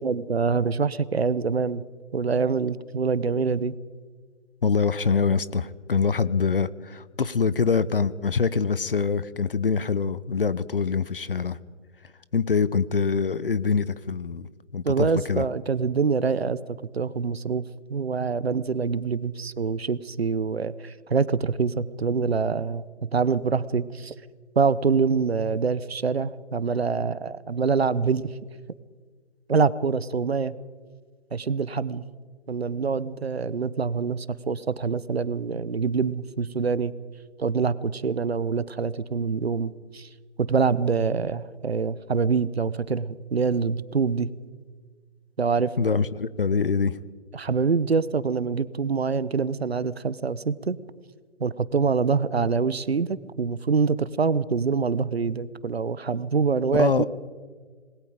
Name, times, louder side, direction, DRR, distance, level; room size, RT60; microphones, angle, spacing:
voice 1, 0.0-1.8 2.1-3.8 14.8-16.6 16.9-17.6 17.9-22.8 23.1-24.1 24.6-28.3 29.5-30.5 31.3-32.0 32.5-36.9 37.4-40.1 40.4-44.3 45.4-45.7 47.3-50.8 51.4-57.1, right 5 dB, 60° right, 18 dB, 0.9 m, -25 dB
voice 2, 4.6-11.6 12.3-15.4 45.8-47.0 56.7-57.1, left 5 dB, 50° left, 17 dB, 0.8 m, -24 dB
27.0 x 20.5 x 5.1 m, 1.5 s
figure-of-eight pair, 145°, 36 cm